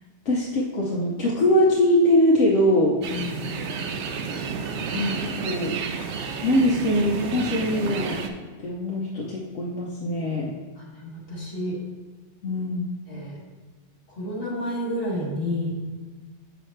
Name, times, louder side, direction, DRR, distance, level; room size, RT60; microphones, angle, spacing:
voice 1, 0.3-3.0 4.9-5.8 6.4-8.2 8.6-10.5 12.4-12.9, left 1 dB, 75° left, -3 dB, 1.2 m, -22 dB
sound 1, 3.0-8.3, right 5 dB, 70° right, 0.9 m, -31 dB
voice 2, 3.1-3.5 10.8-11.8 13.1-13.4 14.1-15.7, left 1 dB, 50° left, -5 dB, 2.6 m, -30 dB
7.9 x 6.1 x 3.2 m, 1.4 s
omnidirectional pair, 1.2 m